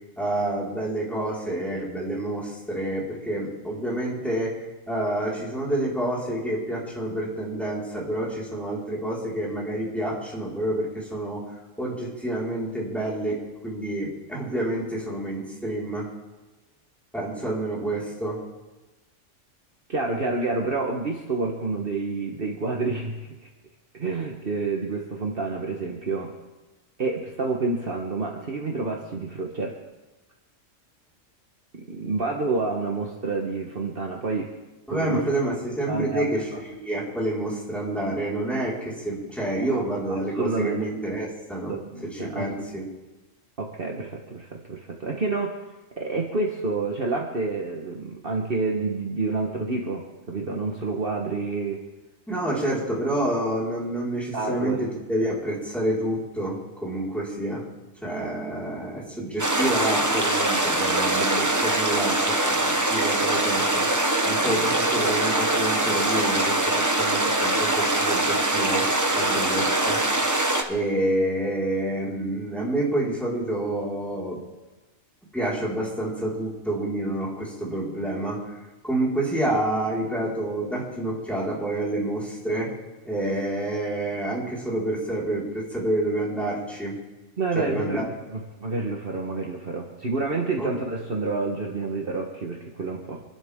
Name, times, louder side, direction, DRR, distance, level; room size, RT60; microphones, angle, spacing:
voice 1, 0.2-11.4 11.8-16.1 17.1-18.4 34.9-41.7 42.0-42.9 52.3-57.6 58.0-68.9 69.1-70.0 70.6-74.4 75.3-78.5 78.8-82.7 83.0-87.0 87.5-88.1 90.6-90.7, right 1 dB, ahead, -6 dB, 4.9 m, -28 dB
voice 2, 19.9-23.5 23.9-26.3 27.0-29.8 31.7-34.5 34.9-35.2 35.9-36.6 39.7-40.9 41.7-42.5 43.6-45.6 46.0-51.8 54.3-54.8 87.4-93.2, right 3 dB, 45° right, 0 dB, 1.6 m, -29 dB
sound 1, 59.4-70.6, right 1 dB, 15° right, 1.1 m, -23 dB
26.5 x 12.0 x 3.8 m, 1.1 s
omnidirectional pair, 1.3 m